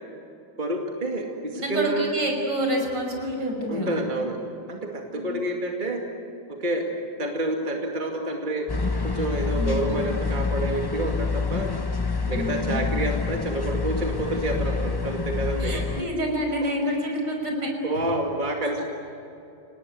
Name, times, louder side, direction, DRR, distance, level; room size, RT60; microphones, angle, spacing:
voice 1, 0.6-2.1 3.7-4.4 4.7-6.0 6.6-6.9 7.2-8.7 9.0-11.7 12.3-16.1 17.8-18.8, right 1 dB, 25° right, 0 dB, 2.5 m, -28 dB
voice 2, 1.5-4.0 5.1-5.2 9.6-10.0 12.3-13.0 14.2-14.4 15.6-17.7 18.0-18.1 18.8-18.9, equal, 70° right, 1 dB, 6.4 m, -28 dB
sound 1, 8.7-16.0, left 4 dB, 30° left, 0.4 m, -27 dB
29.0 x 18.5 x 9.5 m, 2.7 s
omnidirectional pair, 2.0 m